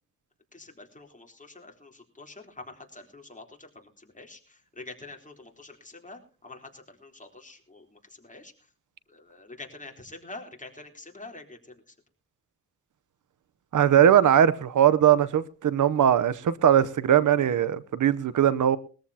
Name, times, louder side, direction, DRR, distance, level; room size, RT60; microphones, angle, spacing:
voice 1, 0.5-8.5 9.1-11.9, left 2 dB, 25° left, 3 dB, 3.7 m, -46 dB
voice 2, 13.7-18.8, right 10 dB, 90° right, 16 dB, 0.8 m, -20 dB
21.0 x 14.0 x 2.8 m, 0.37 s
cardioid pair, 70°, 30 cm